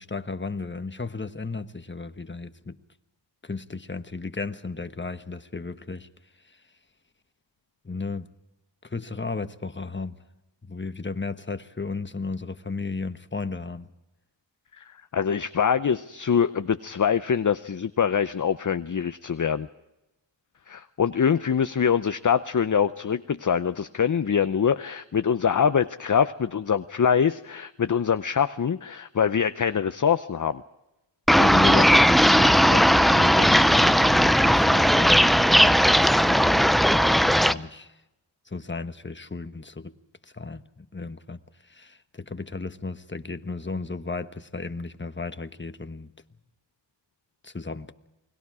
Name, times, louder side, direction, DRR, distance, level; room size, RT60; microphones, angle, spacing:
voice 1, 0.0-2.8 3.4-6.1 7.8-8.3 8.8-10.1 10.7-13.9 31.4-35.9 36.2-37.9 38.5-39.9 40.3-41.4 41.7-46.1 47.4-47.9, left 3 dB, 25° left, 1.3 m, -34 dB
voice 2, 15.1-19.7 20.7-30.6, left 7 dB, 40° left, 0.7 m, -24 dB
sound 1, 31.3-37.5, equal, ahead, 0.6 m, -18 dB
29.5 x 21.0 x 4.9 m
cardioid pair, 50°, 46 cm